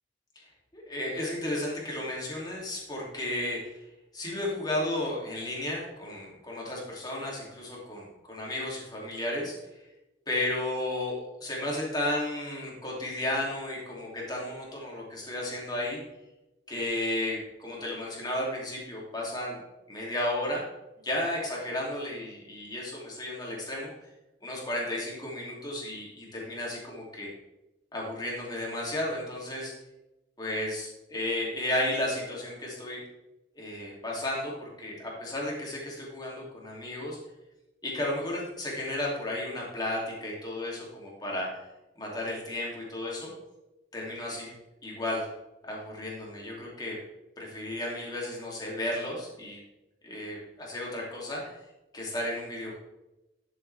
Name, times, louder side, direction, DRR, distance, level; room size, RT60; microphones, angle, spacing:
voice 1, 0.7-3.8 4.1-9.5 10.3-16.0 16.7-19.6 19.9-20.6 21.0-23.9 24.4-27.3 27.9-29.7 30.4-33.0 33.5-37.2 37.8-41.6 42.0-43.3 43.9-44.5 44.8-45.3 45.7-47.0 47.4-49.6 50.0-51.5 51.9-52.8, left 1 dB, 25° left, -3 dB, 2.7 m, -33 dB
11.0 x 7.3 x 3.4 m, 0.99 s
head